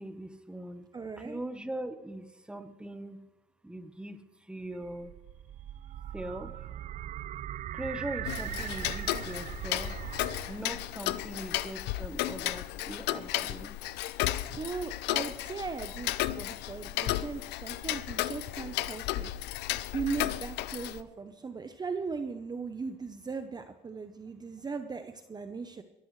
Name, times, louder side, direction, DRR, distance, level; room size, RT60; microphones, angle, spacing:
voice 1, 0.0-0.9 1.2-3.3 3.6-5.1 6.1-6.6 7.7-10.0 10.5-13.8, right 1 dB, 5° right, 9 dB, 1.2 m, -41 dB
voice 2, 0.9-1.4 14.5-19.3 19.6-25.8, right 4 dB, 25° right, 8 dB, 0.9 m, -38 dB
sound 1, 4.6-10.8, right 12 dB, 45° right, 0.4 m, -40 dB
Tick-tock, 8.3-21.0, left 15 dB, 85° left, 0.6 m, -34 dB
22.5 x 14.0 x 3.3 m, 1.1 s
cardioid pair, 110°, 17 cm